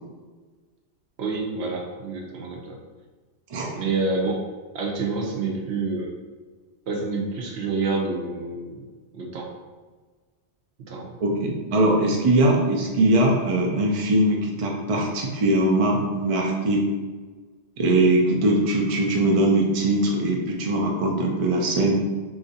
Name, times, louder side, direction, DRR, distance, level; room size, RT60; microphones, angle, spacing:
voice 1, 1.2-2.8 3.7-4.4 4.7-6.1 6.9-8.8 9.1-9.5 10.9-11.1, right 3 dB, 70° right, 0 dB, 0.9 m, -28 dB
voice 2, 3.5-3.8 11.2-16.9 17.8-22.0, right 1 dB, 45° right, 0 dB, 0.4 m, -21 dB
3.1 x 2.5 x 3.9 m, 1.4 s
omnidirectional pair, 1.2 m